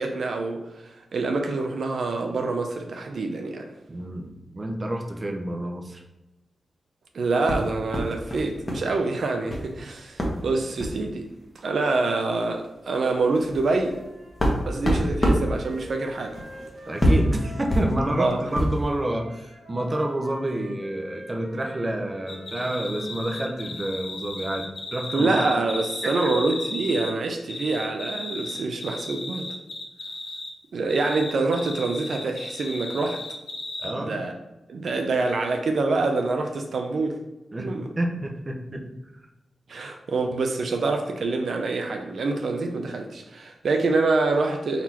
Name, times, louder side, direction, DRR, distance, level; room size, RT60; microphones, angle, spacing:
voice 1, 0.0-3.7 7.1-11.3 11.6-14.0 14.7-16.4 18.2-18.4 25.1-29.5 30.7-33.2 34.0-34.3 34.7-37.2 37.6-37.9 39.7-44.8, right 3 dB, 65° right, 4 dB, 0.5 m, -26 dB
voice 2, 3.9-6.0 16.9-25.3 33.8-34.3 37.5-38.8, right 1 dB, 30° right, 1 dB, 0.6 m, -29 dB
sound 1, 7.5-8.9 9.1-9.7 10.2-10.4 10.7-11.0 11.9-12.0 12.3-12.5 13.0-18.9, equal, 25° left, 1.0 m, -26 dB
Wind instrument woodwind instrument, 13.8-18.4 19.0-23.8, right 1 dB, 85° right, 1.0 m, -46 dB
sound 2, 22.3-27.1 27.5-30.5 30.9-33.9, left 2 dB, 60° left, 0.7 m, -35 dB
4.1 x 2.8 x 4.4 m, 1.0 s
wide cardioid pair, 105°, 0 cm